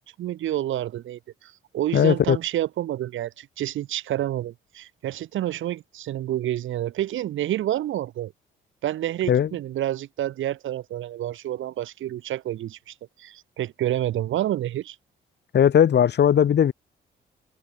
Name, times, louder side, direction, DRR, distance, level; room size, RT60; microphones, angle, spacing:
voice 1, 0.2-8.3 8.8-15.0, right 13 dB, 75° right, 2.9 m, -29 dB
voice 2, 1.9-2.4 9.3-9.5 15.5-16.7, left 9 dB, 60° left, 3.8 m, -18 dB
cardioid pair, 90°, 20 cm